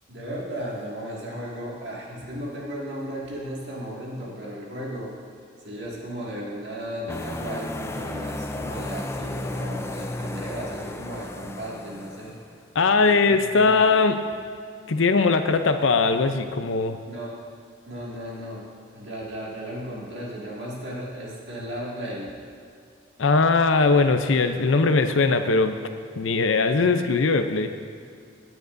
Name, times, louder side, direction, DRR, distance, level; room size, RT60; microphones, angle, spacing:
voice 1, 0.1-5.1 5.6-12.3 12.9-13.9 17.1-17.5 17.9-22.4, equal, 60° right, -4 dB, 2.1 m, -35 dB
sound 1, 7.1-12.6, left 1 dB, 15° left, 0.3 m, -34 dB
voice 2, 12.8-14.2 14.9-17.0 23.2-25.7 26.2-27.7, left 4 dB, 90° left, 8 dB, 0.6 m, -20 dB
16.5 x 9.1 x 2.6 m, 2.3 s
head